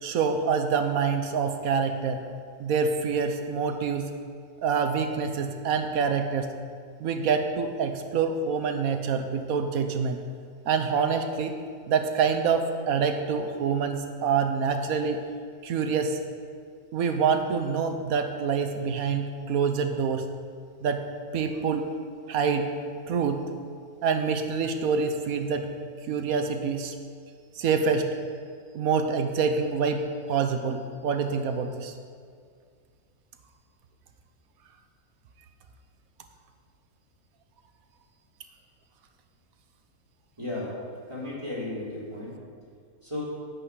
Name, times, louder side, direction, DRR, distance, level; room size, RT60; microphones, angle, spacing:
voice 1, 0.0-2.2 2.6-4.1 4.6-6.5 7.0-10.2 10.7-11.6 11.9-15.3 15.6-16.2 16.9-20.2 20.8-21.0 21.3-21.9 22.3-22.7 23.1-23.4 24.0-25.7 26.1-26.9 27.6-28.1 28.7-31.9, right 5 dB, 70° right, 7 dB, 1.3 m, -26 dB
voice 2, 40.4-40.7 41.1-42.3 43.0-43.2, left 2 dB, 20° right, -7 dB, 3.4 m, -34 dB
11.0 x 5.9 x 8.3 m, 2.2 s
omnidirectional pair, 1.6 m